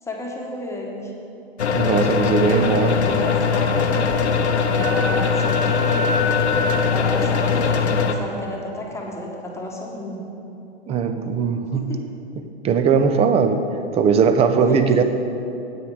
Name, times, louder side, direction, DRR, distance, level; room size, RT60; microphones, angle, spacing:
voice 1, 0.0-1.1 2.5-4.0 4.7-6.2 6.9-10.3 11.7-12.0 14.9-15.0, left 1 dB, 10° left, -2 dB, 1.4 m, -33 dB
sound 1, 1.6-8.1, left 5 dB, 85° left, 0.8 m, -20 dB
voice 2, 1.7-3.0 10.9-11.9 12.6-13.6 13.9-15.0, right 6 dB, 20° right, 8 dB, 0.5 m, -19 dB
Wind instrument woodwind instrument, 4.8-8.2, left 2 dB, 35° right, 1.1 m, -29 dB
9.2 x 8.8 x 4.8 m, 2.9 s
hypercardioid pair, 110°, 33 cm